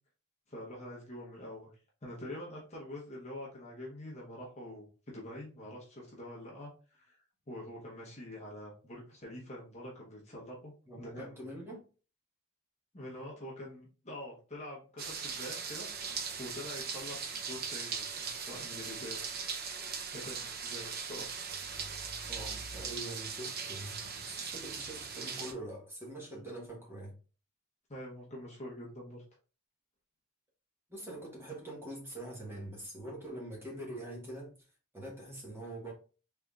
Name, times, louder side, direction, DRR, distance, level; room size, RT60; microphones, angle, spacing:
voice 1, 0.5-1.7 2.0-11.5 12.9-19.3 20.1-21.3 27.9-29.2, left 1 dB, 30° left, 0.9 m, -46 dB
voice 2, 10.9-11.8 22.3-27.2 30.9-34.5 34.9-35.9, right 1 dB, 10° right, 1.1 m, -44 dB
sound 1, 15.0-25.5, right 6 dB, 45° right, 0.5 m, -39 dB
3.6 x 3.4 x 2.3 m
head